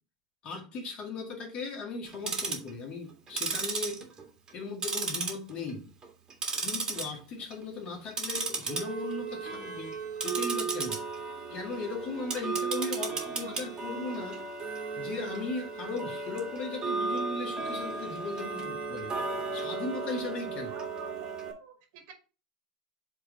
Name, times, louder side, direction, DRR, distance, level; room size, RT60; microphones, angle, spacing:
voice 1, 0.4-4.0 4.5-5.9 6.6-10.0 10.2-11.0 11.5-14.4 15.0-19.2 19.5-20.7, left 3 dB, 40° left, 1.9 m, -37 dB
Tick-tock, 2.1-2.7 3.3-4.6 4.8-5.7 6.0-7.0 7.4-7.7 8.1-21.5, right 4 dB, 25° right, 1.9 m, -34 dB
voice 2, 12.7-13.5 20.4-21.3 21.6-22.1, right 6 dB, 65° right, 2.0 m, -49 dB
5.6 x 3.4 x 5.1 m
hypercardioid pair, 100°, 3 cm